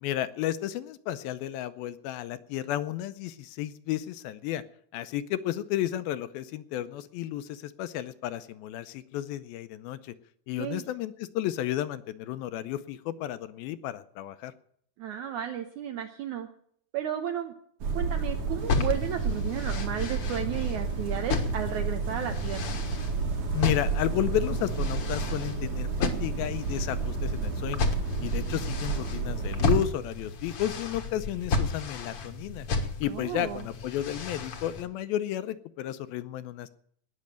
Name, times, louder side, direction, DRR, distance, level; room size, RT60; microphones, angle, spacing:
voice 1, 0.0-4.6 4.9-10.1 10.5-14.5 23.5-27.9 28.2-32.7 33.0-36.7, left 12 dB, 80° left, 13 dB, 2.4 m, -32 dB
voice 2, 15.0-16.5 16.9-17.5 17.9-22.6 33.1-33.6, right 10 dB, 80° right, 5 dB, 1.8 m, -33 dB
sound 1, 17.8-29.9, right 4 dB, 55° right, 2.7 m, -31 dB
sound 2, 18.6-34.8, left 3 dB, 55° left, 1.6 m, -33 dB
19.0 x 6.5 x 9.0 m, 0.64 s
omnidirectional pair, 4.6 m